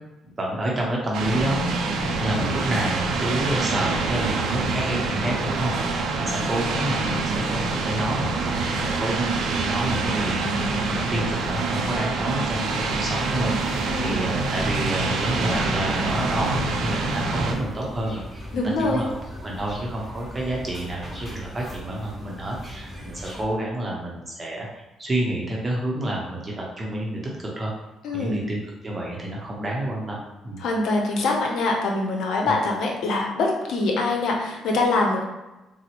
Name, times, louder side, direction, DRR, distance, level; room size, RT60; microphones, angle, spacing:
voice 1, 0.4-1.7 2.2-27.7 28.1-30.6 32.5-32.6, right 1 dB, 25° right, -3 dB, 0.7 m, -29 dB
sound 1, 1.1-17.5, right 3 dB, 70° right, 0.4 m, -26 dB
sound 2, 12.5-23.5, equal, 5° left, 0.9 m, -39 dB
voice 2, 13.9-14.2 18.5-19.1 28.0-28.4 30.6-35.2, left 2 dB, 70° left, 1 dB, 0.7 m, -24 dB
3.9 x 2.0 x 2.9 m, 1.0 s
cardioid pair, 90°, 0 cm